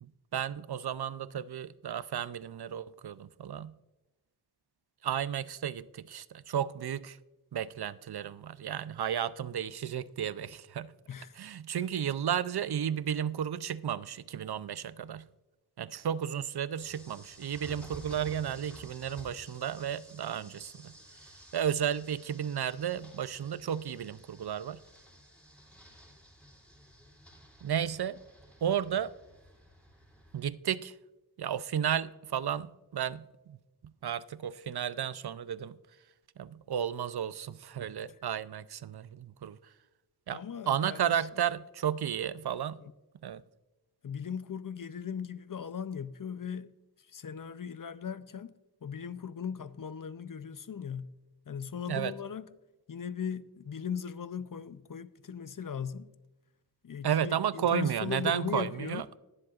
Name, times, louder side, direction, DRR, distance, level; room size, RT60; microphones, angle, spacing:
voice 1, 0.0-3.7 5.0-7.2 7.5-10.9 11.4-15.2 15.8-20.9 21.5-24.8 27.6-28.2 28.6-29.1 30.3-30.9 31.4-33.6 34.0-35.8 36.4-39.6 40.3-42.8 43.2-43.4 51.9-52.1 57.0-59.2, right 9 dB, 65° right, 0.5 m, -33 dB
voice 2, 11.1-11.4 11.7-11.8 40.3-41.3 42.8-42.9 44.0-46.7 47.0-48.5 48.8-51.1 51.5-52.5 52.9-56.1 56.8-59.1, left 7 dB, 50° left, 0.5 m, -38 dB
sound 1, 16.8-30.4, equal, 5° left, 2.8 m, -53 dB
20.5 x 7.6 x 2.4 m
wide cardioid pair, 45°, 41 cm